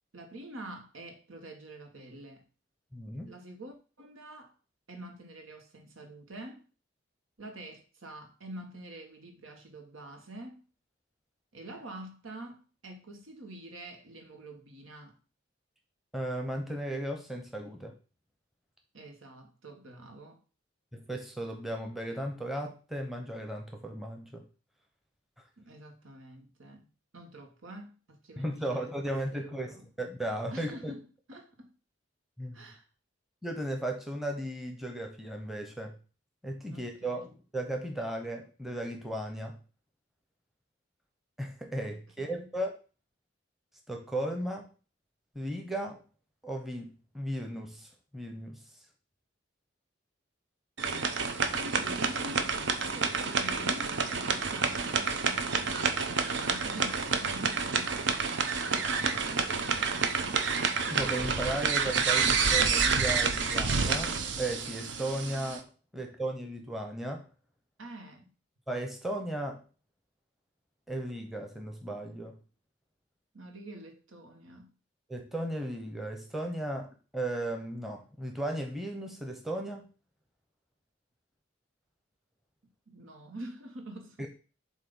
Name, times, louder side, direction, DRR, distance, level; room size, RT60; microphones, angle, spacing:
voice 1, 0.1-2.4 3.3-4.5 4.9-6.7 7.4-10.6 11.5-15.2 18.9-20.4 25.6-26.9 27.1-29.8 30.5-31.7 32.5-32.8 36.7-37.2 42.2-42.5 51.5-58.1 58.5-60.4 67.8-68.3 73.3-74.7 82.9-84.3, right 1 dB, 85° right, 1.4 m, -46 dB
voice 2, 2.9-3.3 16.1-17.9 20.9-24.4 28.4-30.9 32.4-32.6 33.4-36.0 36.4-39.6 41.4-42.7 43.9-44.7 45.3-46.0 46.4-48.6 60.9-67.3 68.7-69.6 70.9-72.4 75.1-79.9 84.2-84.3, right 1 dB, ahead, 0.8 m, -36 dB
sound 1, 50.8-65.6, right 5 dB, 65° right, 0.7 m, -29 dB
7.5 x 2.7 x 5.3 m
head